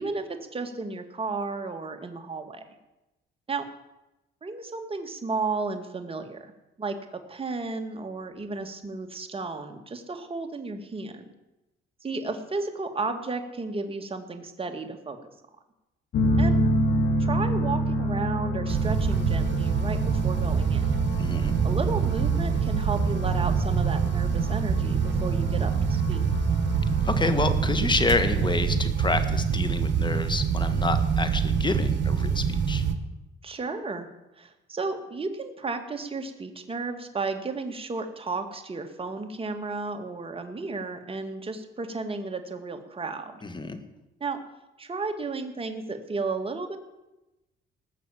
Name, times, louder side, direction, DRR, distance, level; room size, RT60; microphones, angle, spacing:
voice 1, 0.0-2.6 3.5-3.7 4.4-6.5 6.8-11.2 12.0-15.2 16.4-16.6 17.2-20.9 21.6-26.3 33.4-34.1 34.4-43.4 44.2-44.4 44.8-46.8, right 3 dB, 30° right, 6 dB, 2.0 m, -33 dB
sound 1, 16.1-28.8, equal, 70° left, 2.7 m, -29 dB
sound 2, 18.7-33.0, right 7 dB, 65° right, 1.5 m, -25 dB
voice 2, 21.2-21.5 27.0-32.8 43.4-43.8, left 3 dB, 25° left, 9 dB, 1.8 m, -28 dB
19.5 x 6.5 x 8.5 m, 0.99 s
cardioid pair, 90°, 20 cm